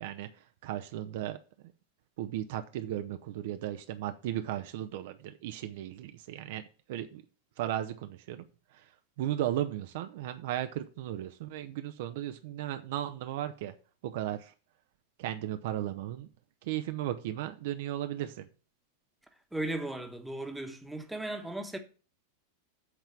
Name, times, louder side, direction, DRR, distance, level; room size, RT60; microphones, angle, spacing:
voice 1, 0.0-1.4 2.2-7.2 7.6-8.4 8.7-8.9 9.2-13.7 14.0-14.5 15.2-16.3 16.6-18.5, right 12 dB, 50° right, 0.6 m, -36 dB
voice 2, 19.5-21.8, right 1 dB, 5° right, 1.2 m, -36 dB
8.0 x 4.5 x 7.1 m
figure-of-eight pair, 90°, 0 cm